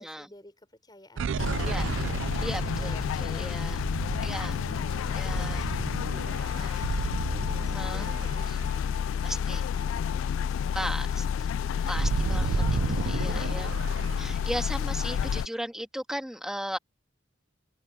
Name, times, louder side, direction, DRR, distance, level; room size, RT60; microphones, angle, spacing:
voice 1, 0.0-1.7 2.4-4.8 5.0-5.8 6.2-7.4 7.7-10.7 12.0-13.7, left 2 dB, 20° left, 5.5 m, -52 dB
sound 1, 1.2-9.6 10.0-10.1 10.4-14.6, right 5 dB, 75° right, 0.4 m, -33 dB
sound 2, 1.4-15.5, left 7 dB, 90° left, 0.3 m, -30 dB
voice 2, 2.4-3.8 4.2-4.6 5.2-5.7 6.5-6.8 7.6-8.6 9.2-9.7 10.7-11.3 11.9-12.6 12.9-13.7 14.2-16.8, equal, 5° right, 1.9 m, -36 dB
head